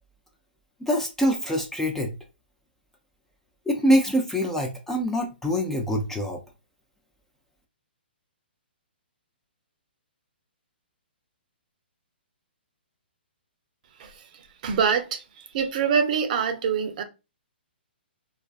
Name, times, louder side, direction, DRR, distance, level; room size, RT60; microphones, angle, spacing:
voice 1, 0.8-2.1 3.7-6.4, equal, 5° left, 0.3 m, -24 dB
voice 2, 14.0-17.0, right 6 dB, 50° right, 0.5 m, -25 dB
2.4 x 2.3 x 2.3 m
hypercardioid pair, 135°, 6 cm